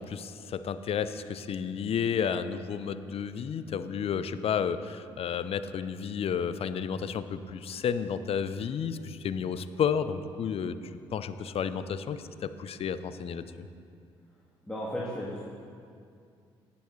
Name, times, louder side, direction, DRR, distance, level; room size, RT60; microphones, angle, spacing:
voice 1, 0.0-10.8 11.1-13.4, left 7 dB, 55° left, 12 dB, 0.5 m, -31 dB
voice 2, 14.7-15.4, equal, 5° left, -7 dB, 1.9 m, -34 dB
17.5 x 7.0 x 3.2 m, 2.4 s
hypercardioid pair, 50°, 12 cm